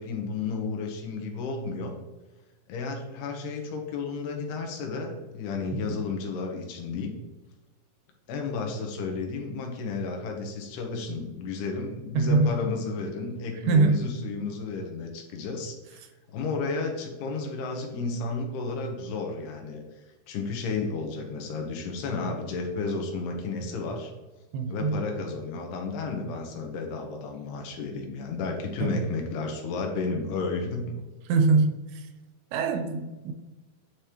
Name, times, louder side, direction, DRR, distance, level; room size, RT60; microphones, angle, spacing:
voice 1, 0.0-2.0 2.7-7.1 8.3-19.8 20.3-24.1 24.7-30.8, left 4 dB, 85° left, 3.0 m, -32 dB
voice 2, 12.2-12.6 13.7-14.1 24.5-25.0 28.8-29.0 31.3-31.9 32.5-33.3, right 4 dB, 85° right, 2.5 m, -23 dB
9.0 x 5.0 x 3.0 m
omnidirectional pair, 4.6 m